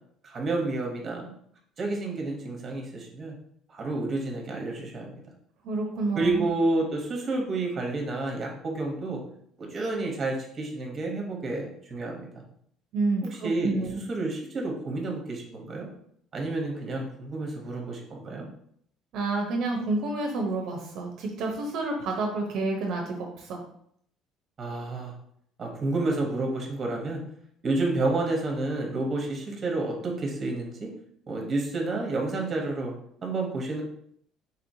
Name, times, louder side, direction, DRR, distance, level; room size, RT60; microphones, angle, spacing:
voice 1, 0.2-1.3 1.8-3.3 3.7-5.2 6.2-9.2 9.6-12.3 13.2-13.7 14.1-15.9 16.3-18.5 24.6-25.1 25.6-27.2 27.6-30.9 31.3-32.9 33.2-33.8, right 2 dB, 30° right, 1 dB, 0.9 m, -30 dB
voice 2, 5.6-6.4 12.9-14.0 19.1-23.6, right 3 dB, 60° right, 1 dB, 0.6 m, -29 dB
4.1 x 2.9 x 2.6 m, 0.67 s
cardioid pair, 135°, 0 cm